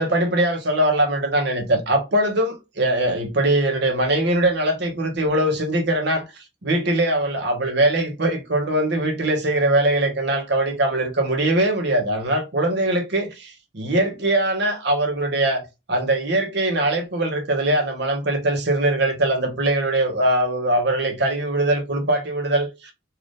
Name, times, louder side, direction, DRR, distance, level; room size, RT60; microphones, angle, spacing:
voice 1, 0.0-15.6 15.9-22.9, right 1 dB, 65° right, 0.8 m, -21 dB
2.5 x 2.4 x 3.4 m
head